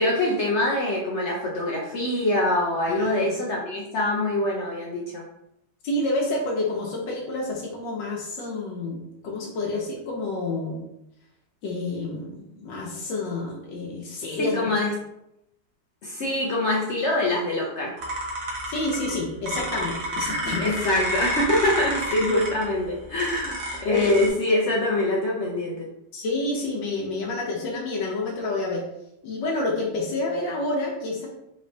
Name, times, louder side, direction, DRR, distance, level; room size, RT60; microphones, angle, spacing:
voice 1, 0.0-5.2 14.4-14.9 16.0-18.0 20.6-25.9, left 1 dB, 65° left, -3 dB, 0.6 m, -24 dB
voice 2, 5.8-10.8 11.6-14.7 18.7-20.7 23.9-24.1 26.1-28.9 29.2-31.3, left 2 dB, 85° left, -2 dB, 1.4 m, -29 dB
sound 1, 18.0-24.3, right 1 dB, 60° right, 1.2 m, -31 dB
4.1 x 3.1 x 2.6 m, 0.82 s
omnidirectional pair, 1.9 m